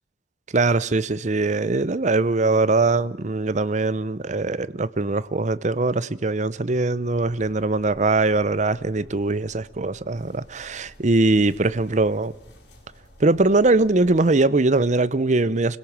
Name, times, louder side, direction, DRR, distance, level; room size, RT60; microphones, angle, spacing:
voice 1, 0.5-12.3 13.2-15.8, right 3 dB, 45° right, 0.7 m, -21 dB
sound 1, 7.0-14.3, equal, 70° left, 6.5 m, -50 dB
25.5 x 17.0 x 7.3 m
head